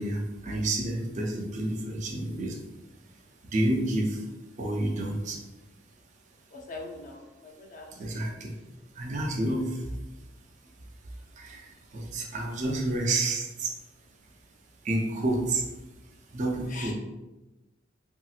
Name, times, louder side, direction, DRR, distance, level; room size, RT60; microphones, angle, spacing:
voice 1, 0.0-2.6 3.5-4.2 4.6-5.4 8.0-8.6 9.0-9.8 11.4-11.6 11.9-13.7 14.8-15.6 16.3-16.9, right 1 dB, 40° right, 0 dB, 0.4 m, -29 dB
voice 2, 6.5-8.3 16.7-16.9, left 3 dB, 45° left, 1 dB, 0.5 m, -43 dB
3.0 x 2.8 x 2.4 m, 1.0 s
head